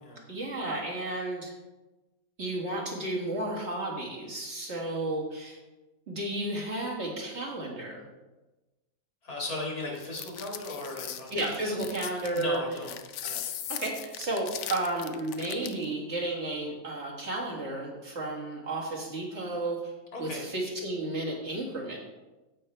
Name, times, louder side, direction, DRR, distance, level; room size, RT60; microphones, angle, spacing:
voice 1, 0.3-1.5 2.4-5.6 6.1-8.0 11.3-12.6 13.7-19.9 20.2-22.0, right 2 dB, 50° right, -3 dB, 2.1 m, -32 dB
voice 2, 9.2-11.4 11.8-11.9 12.3-13.0 13.2-13.4 20.1-20.5, left 2 dB, 80° left, -2 dB, 2.7 m, -36 dB
sound 1, 10.0-15.9, left 10 dB, 65° left, 0.8 m, -39 dB
15.5 x 5.6 x 3.3 m, 1.1 s
omnidirectional pair, 1.6 m